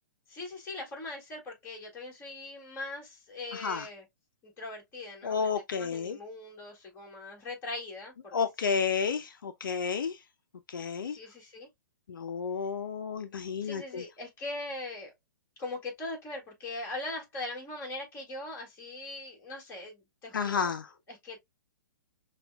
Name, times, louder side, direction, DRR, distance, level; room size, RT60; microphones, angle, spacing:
voice 1, 0.3-4.1 4.4-8.8 11.0-11.7 13.6-15.1 15.6-20.7 21.1-21.4, left 2 dB, 25° left, 2.0 m, -41 dB
voice 2, 5.2-6.2 8.3-10.1 10.7-11.2 12.1-14.0 20.3-20.8, left 6 dB, 80° left, 0.5 m, -31 dB
5.8 x 2.4 x 2.2 m
hypercardioid pair, 135°, 11 cm